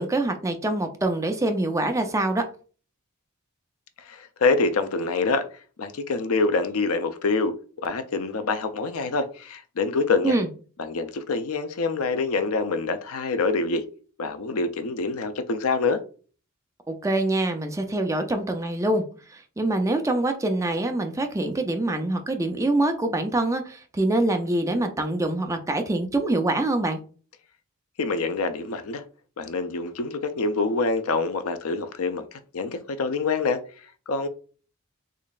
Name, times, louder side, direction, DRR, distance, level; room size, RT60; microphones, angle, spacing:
voice 1, 0.0-2.5 10.2-10.5 16.9-19.0 19.3-27.0, right 2 dB, 15° right, 6 dB, 0.4 m, -25 dB
voice 2, 4.0-5.4 5.8-7.5 7.8-10.3 10.8-13.8 14.2-16.0 28.0-29.0 29.4-33.6 34.1-34.3, left 3 dB, 75° left, 9 dB, 0.5 m, -26 dB
3.8 x 3.1 x 2.4 m, 0.38 s
head